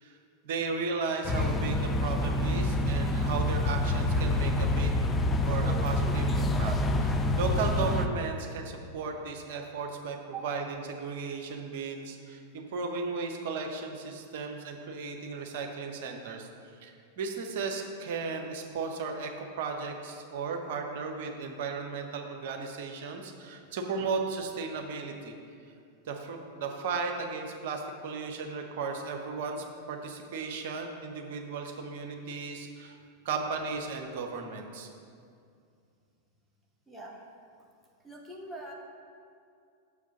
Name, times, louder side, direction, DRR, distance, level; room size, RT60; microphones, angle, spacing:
voice 1, 0.4-4.9 5.4-16.5 16.8-25.3 26.1-32.9 33.2-34.9, right 4 dB, 50° right, 3 dB, 0.9 m, -35 dB
sound 1, 1.2-8.1, left 1 dB, 15° left, 0.5 m, -27 dB
voice 2, 36.9-37.2 38.0-38.7, right 3 dB, ahead, -4 dB, 1.4 m, -42 dB
6.6 x 4.9 x 6.8 m, 2.4 s
figure-of-eight pair, 90°, 0 cm